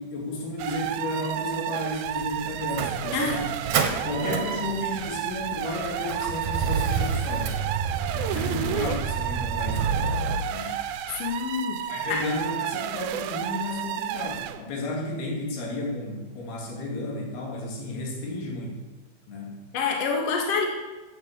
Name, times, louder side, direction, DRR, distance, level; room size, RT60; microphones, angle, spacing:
voice 1, 0.0-3.4 4.0-7.5 8.1-10.1 10.5-10.8 11.9-18.8 19.3-19.6, left 2 dB, 85° left, -1 dB, 4.8 m, -33 dB
sound 1, 0.6-14.6, right 11 dB, 80° right, 2.5 m, -32 dB
Motor vehicle (road), 2.0-10.4, right 5 dB, 60° right, 2.2 m, -30 dB
voice 2, 3.1-3.5 8.3-8.8 10.6-10.8 11.2-12.2 19.7-20.7, left 5 dB, 45° left, 1 dB, 2.6 m, -28 dB
14.0 x 7.9 x 7.6 m, 1.2 s
omnidirectional pair, 4.4 m